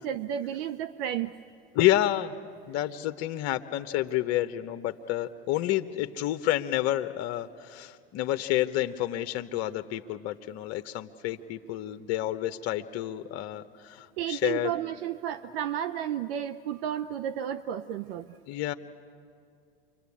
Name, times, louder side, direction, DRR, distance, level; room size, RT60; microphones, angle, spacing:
voice 1, 0.0-1.3 14.2-18.4, right 10 dB, 65° right, 10 dB, 0.8 m, -32 dB
voice 2, 1.7-2.3 2.7-14.7 18.5-18.7, left 14 dB, 55° left, 9 dB, 1.0 m, -29 dB
29.0 x 24.0 x 8.5 m, 2.3 s
hypercardioid pair, 85°, 31 cm